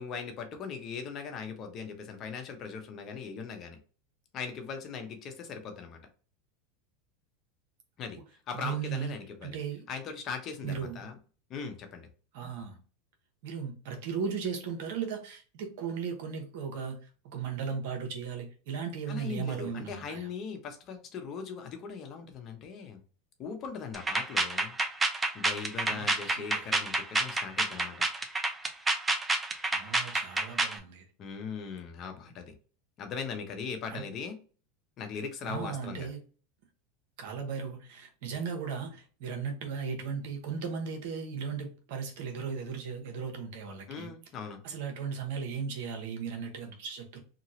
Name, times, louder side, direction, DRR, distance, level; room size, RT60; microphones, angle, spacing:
voice 1, 0.0-3.8 4.3-6.0 8.0-8.2 8.5-9.6 9.9-11.2 11.5-12.1 19.1-23.0 23.4-24.7 25.3-28.0 31.2-32.5 33.0-34.4 35.0-36.1 43.9-44.6, left 5 dB, 40° left, 6 dB, 0.9 m, -39 dB
voice 2, 8.5-9.8 10.6-11.1 12.3-12.8 13.4-17.0 17.2-20.3 25.9-26.1 26.4-26.7 29.7-31.0 33.9-34.0 35.4-36.2 37.2-44.1 44.6-47.2, right 6 dB, 70° right, 3 dB, 1.0 m, -36 dB
sound 1, 23.9-30.8, right 2 dB, 15° right, 0.6 m, -28 dB
2.9 x 2.7 x 2.8 m, 0.38 s
supercardioid pair, 110°, 0 cm